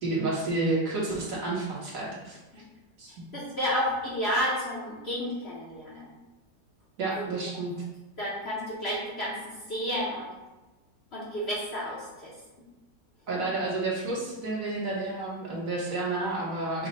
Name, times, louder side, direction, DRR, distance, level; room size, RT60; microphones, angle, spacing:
voice 1, 0.0-2.4 3.0-3.2 7.0-7.7 13.3-16.9, right 2 dB, 55° right, -5 dB, 1.3 m, -30 dB
voice 2, 3.3-6.1 8.2-9.3 9.7-10.3 11.1-12.3, equal, 50° left, -7 dB, 0.9 m, -31 dB
5.3 x 2.2 x 4.0 m, 1.1 s
omnidirectional pair, 1.8 m